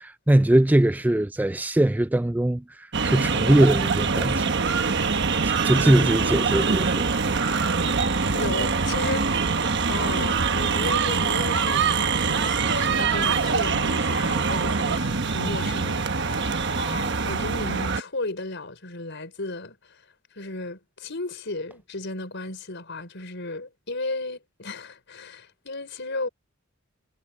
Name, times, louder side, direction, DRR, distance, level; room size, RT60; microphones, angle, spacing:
voice 1, 0.0-4.9 5.6-7.5, right 1 dB, 10° right, 0.3 m, -22 dB
sound 1, 2.9-18.0, right 5 dB, 60° right, 1.2 m, -24 dB
voice 2, 8.3-9.6 9.9-20.0 20.3-26.3, left 2 dB, 60° left, 5.2 m, -34 dB
head